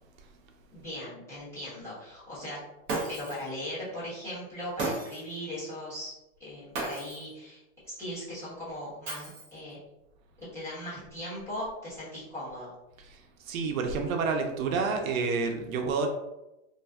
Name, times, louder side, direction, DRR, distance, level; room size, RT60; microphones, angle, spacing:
voice 1, 0.7-2.6 3.1-6.1 6.4-9.8 10.5-12.7, left 1 dB, 5° left, -12 dB, 1.1 m, -39 dB
Shatter, 2.9-3.5 4.8-5.4 6.7-7.3 9.1-9.7, right 3 dB, 25° right, 0.6 m, -34 dB
voice 2, 13.5-16.1, right 4 dB, 85° right, 4 dB, 0.6 m, -29 dB
2.5 x 2.2 x 3.3 m, 0.94 s
supercardioid pair, 160°, 40 cm